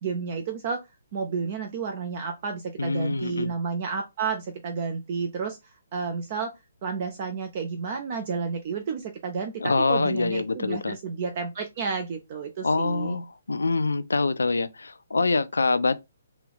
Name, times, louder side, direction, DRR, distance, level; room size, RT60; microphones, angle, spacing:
voice 1, 0.0-0.8 1.1-5.6 5.9-6.5 6.8-13.2, right 5 dB, 40° right, 0.5 m, -31 dB
voice 2, 2.8-3.5 9.6-11.0 12.6-16.0, left 3 dB, 70° left, 0.4 m, -25 dB
3.4 x 2.5 x 3.5 m
figure-of-eight pair, 130°, 0 cm